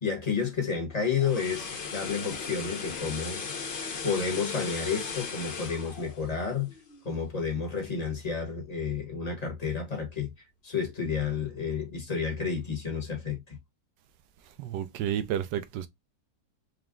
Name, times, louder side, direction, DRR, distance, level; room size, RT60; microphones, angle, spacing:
voice 1, 0.0-3.4 4.0-6.7 7.0-10.3 10.6-13.6, left 6 dB, 25° left, 1.0 m, -31 dB
sound 1, 0.9-7.1 7.4-7.6, left 5 dB, 70° left, 0.5 m, -37 dB
voice 2, 14.4-15.9, right 10 dB, 75° right, 1.2 m, -31 dB
5.1 x 2.2 x 3.6 m
omnidirectional pair, 2.0 m